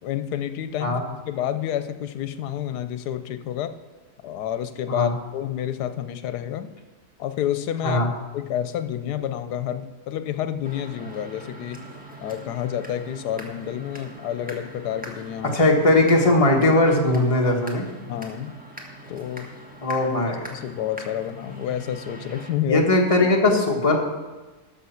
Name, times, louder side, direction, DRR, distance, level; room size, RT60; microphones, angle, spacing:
voice 1, 0.0-1.0 1.3-3.8 4.2-6.7 7.2-8.1 8.3-11.9 12.2-15.6 18.1-18.5 19.1-19.5 20.3-22.8, left 10 dB, 80° left, 10 dB, 1.2 m, -29 dB
sound 1, 10.6-22.5, right 2 dB, 5° right, 1.2 m, -42 dB
voice 2, 15.4-17.9 19.8-20.5 22.7-24.0, left 2 dB, 20° left, 0 dB, 1.4 m, -19 dB
12.5 x 6.0 x 5.7 m, 1.2 s
omnidirectional pair, 1.7 m